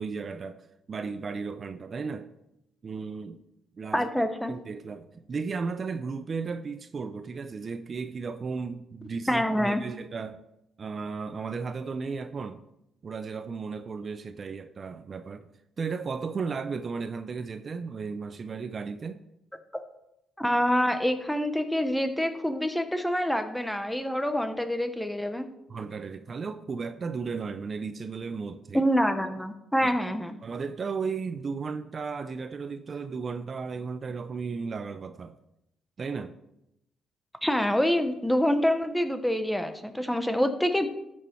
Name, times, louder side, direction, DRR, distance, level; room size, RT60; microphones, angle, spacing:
voice 1, 0.0-2.3 2.8-3.4 3.8-4.1 4.5-10.4 10.8-12.6 13.0-15.5 15.8-19.2 25.7-28.8 29.8-29.9 30.4-35.4 36.0-36.3, right 5 dB, 40° right, 0.6 m, -35 dB
voice 2, 3.9-4.5 9.3-9.8 19.7-19.8 20.4-25.5 28.7-30.3 37.4-40.9, equal, 5° left, 1.0 m, -26 dB
12.5 x 6.3 x 4.5 m
cardioid pair, 90°, 0 cm